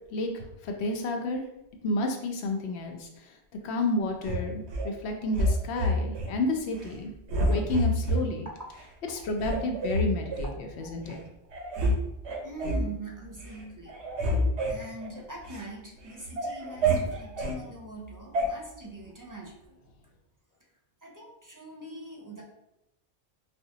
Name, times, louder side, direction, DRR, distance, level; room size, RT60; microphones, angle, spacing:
voice 1, 0.1-1.4 1.8-3.1 3.6-7.1 7.5-8.5 9.1-10.5 10.8-11.2, left 2 dB, 80° left, 3 dB, 0.8 m, -30 dB
sound 1, 4.2-4.9 5.3-6.3 6.7-7.0 7.3-8.2 8.8-8.9 9.4-10.5 11.1-11.2 11.5-12.0 12.2-12.9 13.3-13.6 13.9-15.7 16.1-17.6 18.3-18.5, equal, 80° right, 0.9 m, -28 dB
voice 2, 12.4-13.9 14.7-19.8 21.0-22.4, right 1 dB, 25° right, -3 dB, 0.4 m, -42 dB
4.3 x 2.0 x 2.7 m, 0.87 s
omnidirectional pair, 1.1 m